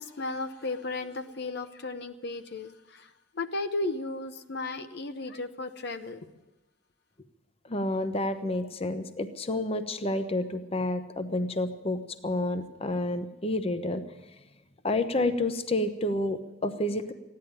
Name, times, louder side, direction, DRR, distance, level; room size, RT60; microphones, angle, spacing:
voice 1, 0.0-6.2, left 2 dB, 65° left, 8 dB, 0.8 m, -35 dB
voice 2, 7.6-14.0 14.8-17.1, left 2 dB, 30° left, 10 dB, 0.8 m, -29 dB
15.0 x 10.5 x 9.0 m, 1.1 s
head